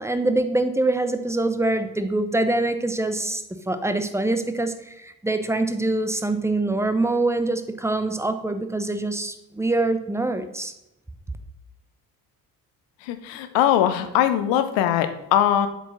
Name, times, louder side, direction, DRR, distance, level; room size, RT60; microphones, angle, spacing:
voice 1, 0.0-10.7, right 2 dB, 5° right, 9 dB, 0.7 m, -24 dB
voice 2, 13.1-15.7, left 11 dB, 60° left, 10 dB, 0.9 m, -21 dB
8.1 x 4.8 x 4.0 m, 0.91 s
figure-of-eight pair, 50°, 50 cm